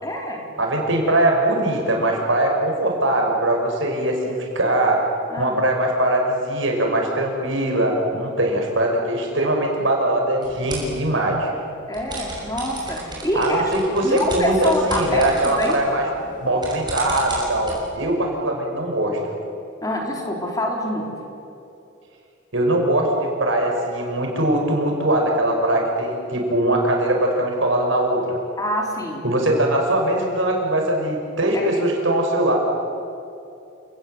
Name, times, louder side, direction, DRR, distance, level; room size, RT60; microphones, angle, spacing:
voice 1, 0.0-0.4 5.3-5.5 11.9-15.7 19.8-21.1 28.6-29.2 31.5-31.8, equal, 15° left, 0 dB, 3.7 m, -25 dB
voice 2, 0.6-5.0 5.4-11.5 13.3-16.1 16.4-19.2 22.5-28.4 29.2-32.6, right 1 dB, 75° right, 1 dB, 6.0 m, -21 dB
sound 1, 10.4-11.0 11.9-17.8, right 2 dB, 20° right, 6.4 m, -35 dB
29.5 x 19.5 x 8.1 m, 2.7 s
head